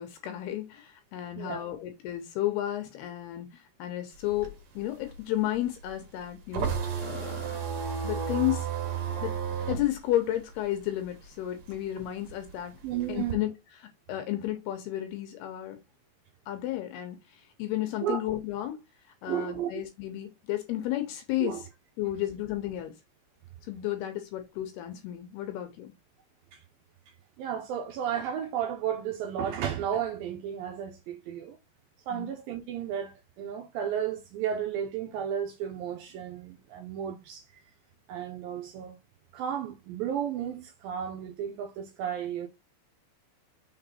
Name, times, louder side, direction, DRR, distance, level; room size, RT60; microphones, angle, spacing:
voice 1, 0.0-6.7 7.0-7.6 8.0-8.7 9.2-9.3 9.7-12.8 13.1-13.5 14.1-15.8 16.5-18.8 19.2-21.5 22.0-22.9 23.7-25.9 32.1-32.3, left 13 dB, 75° left, 2.7 m, -32 dB
voice 2, 1.4-1.8 12.8-13.4 18.0-18.2 19.3-19.7 21.4-21.6 26.5-26.6 27.4-31.6 32.1-37.5 38.1-39.0 39.3-42.5, right 9 dB, 85° right, 2.0 m, -33 dB
sound 1, 4.1-11.2 11.6-13.3, right 7 dB, 55° right, 2.1 m, -33 dB
6.1 x 3.9 x 4.2 m
omnidirectional pair, 5.0 m